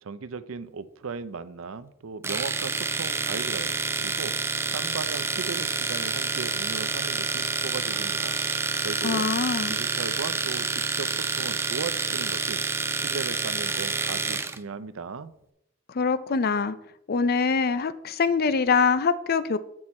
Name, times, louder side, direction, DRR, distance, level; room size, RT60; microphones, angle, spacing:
voice 1, 0.0-4.3 4.7-8.3 8.8-9.3 9.7-12.6 12.9-15.3, right 5 dB, 70° right, 13 dB, 0.5 m, -37 dB
Domestic sounds home sounds, 2.2-14.6, right 4 dB, 10° right, 0.4 m, -28 dB
voice 2, 9.0-9.7 15.9-16.7 17.1-19.6, left 5 dB, 50° left, 14 dB, 0.5 m, -24 dB
8.8 x 6.3 x 4.3 m, 0.80 s
head